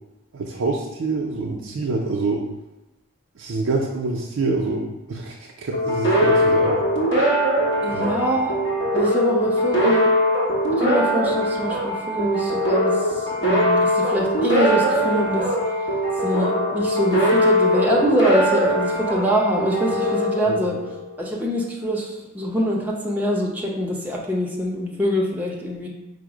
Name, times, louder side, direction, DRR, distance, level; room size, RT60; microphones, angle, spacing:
voice 1, 0.3-2.4 3.4-6.8 7.8-8.2 20.5-20.6, right 3 dB, 75° right, -2 dB, 0.5 m, -26 dB
sound 1, 5.7-21.1, equal, 60° left, 1.2 m, -21 dB
voice 2, 7.8-8.6 8.9-10.1 10.8-12.9 13.4-15.5 16.2-20.8 21.2-22.1 22.3-25.9, equal, 10° right, -3 dB, 0.6 m, -24 dB
5.0 x 2.1 x 4.8 m, 1.0 s
head